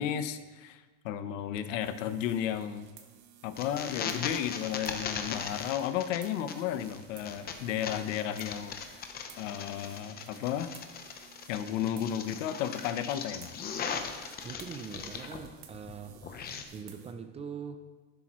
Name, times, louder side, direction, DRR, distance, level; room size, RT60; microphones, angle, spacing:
voice 1, 0.0-2.9 3.4-9.1 9.4-10.7 11.5-13.5, left 10 dB, 90° left, 11 dB, 0.9 m, -33 dB
sound 1, 1.8-17.1, right 10 dB, 65° right, 1.4 m, -56 dB
sound 2, 3.6-15.5 15.7-16.6, left 6 dB, 25° left, 0.7 m, -39 dB
voice 2, 14.4-16.2 16.7-17.8, right 6 dB, 15° right, 8 dB, 0.4 m, -42 dB
11.5 x 10.5 x 3.1 m, 1.3 s
cardioid pair, 150°, 37 cm